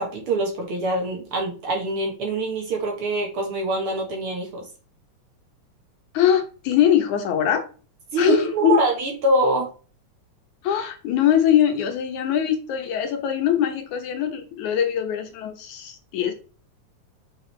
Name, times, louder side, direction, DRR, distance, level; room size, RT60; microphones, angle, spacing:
voice 1, 0.0-4.7 8.1-9.7, right 2 dB, 55° right, 1 dB, 2.1 m, -24 dB
voice 2, 6.1-7.6 8.2-8.7 10.6-16.3, left 10 dB, 85° left, 5 dB, 2.6 m, -22 dB
6.2 x 5.8 x 3.3 m, 0.37 s
omnidirectional pair, 3.3 m